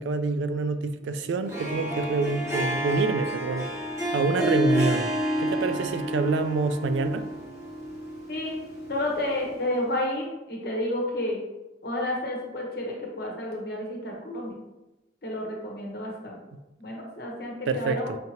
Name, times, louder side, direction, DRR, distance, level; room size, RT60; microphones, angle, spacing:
voice 1, 0.0-3.7 4.1-5.1 5.4-7.3 17.7-18.2, right 4 dB, 75° right, 0.3 m, -27 dB
Harp, 1.4-9.7, equal, 15° right, 0.9 m, -30 dB
voice 2, 8.3-8.6 8.9-11.4 11.8-14.6 15.2-16.4 16.8-18.1, left 1 dB, 55° left, 1.0 m, -31 dB
5.0 x 2.7 x 2.9 m
head